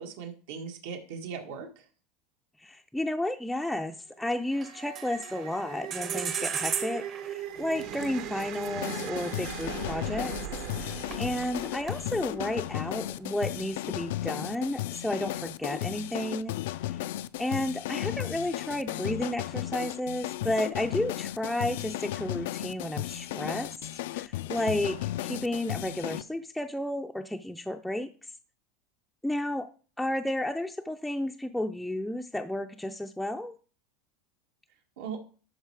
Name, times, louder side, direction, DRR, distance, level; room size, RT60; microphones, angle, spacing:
voice 1, 0.0-1.8 35.0-35.2, right 6 dB, 80° right, 2 dB, 1.9 m, -39 dB
voice 2, 2.6-10.3 10.8-16.5 16.9-17.0 17.4-23.7 24.1-28.1 29.2-29.7 30.0-33.5, left 1 dB, ahead, 2 dB, 0.5 m, -32 dB
sound 1, 4.2-13.5, right 10 dB, 55° right, 1.0 m, -40 dB
sound 2, 4.6-5.6 5.9-10.6 10.9-12.1, right 7 dB, 30° right, 0.8 m, -36 dB
sound 3, 8.8-26.2, left 15 dB, 75° left, 0.4 m, -35 dB
12.0 x 4.3 x 4.8 m, 0.38 s
supercardioid pair, 160°, 0 cm